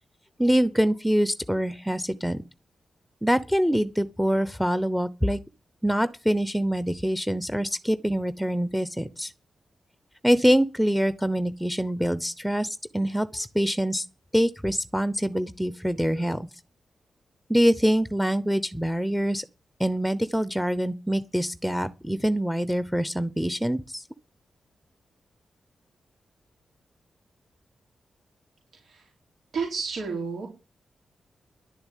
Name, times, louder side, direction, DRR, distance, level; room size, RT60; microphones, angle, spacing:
voice 1, 0.4-2.4 3.2-5.4 5.8-9.3 10.2-14.0 14.3-16.5 17.5-19.4 19.8-24.0, equal, ahead, 0.8 m, -25 dB
voice 2, 29.5-30.5, right 5 dB, 80° right, 4.6 m, -31 dB
11.0 x 6.8 x 9.2 m
cardioid pair, 85°, 0 cm